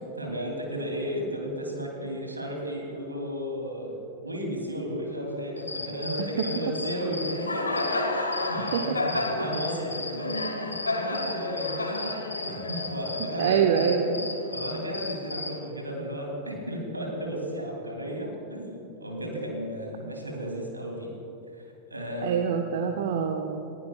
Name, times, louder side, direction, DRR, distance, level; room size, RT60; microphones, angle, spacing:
voice 1, 0.2-10.3 10.6-13.8 14.5-21.1 21.9-22.5, equal, 80° right, -1 dB, 2.9 m, -34 dB
Cricket, 5.6-15.6, left 2 dB, 80° left, 1.3 m, -32 dB
voice 2, 13.4-14.3 22.2-23.7, right 7 dB, 55° right, 5 dB, 0.7 m, -25 dB
20.0 x 15.0 x 2.4 m, 2.9 s
figure-of-eight pair, 90°, 0 cm